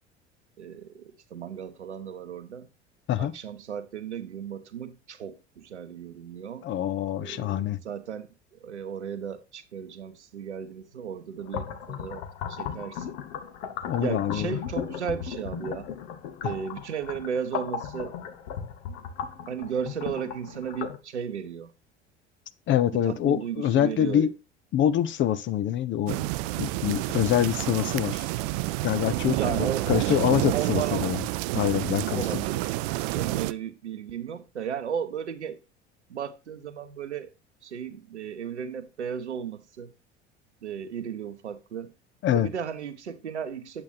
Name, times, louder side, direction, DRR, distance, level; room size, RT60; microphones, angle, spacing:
voice 1, 0.6-2.7 3.2-6.7 7.2-12.2 12.5-13.2 14.0-15.9 16.4-18.2 19.5-21.7 22.9-24.3 29.1-31.1 32.1-32.9 33.1-35.6 36.1-37.3 37.6-39.9 40.6-41.9 42.3-43.8, right 8 dB, 80° right, 0.8 m, -35 dB
voice 2, 6.6-7.8 13.9-14.5 16.4-16.5 22.7-24.3 24.7-26.3 26.6-28.3 28.8-31.2 31.5-32.2 42.2-42.5, left 11 dB, 35° left, 0.7 m, -25 dB
sound 1, 11.4-21.0, left 7 dB, 55° left, 1.2 m, -36 dB
sound 2, 26.1-33.5, right 18 dB, 50° right, 0.5 m, -29 dB
8.4 x 7.9 x 2.6 m
figure-of-eight pair, 65°, 34 cm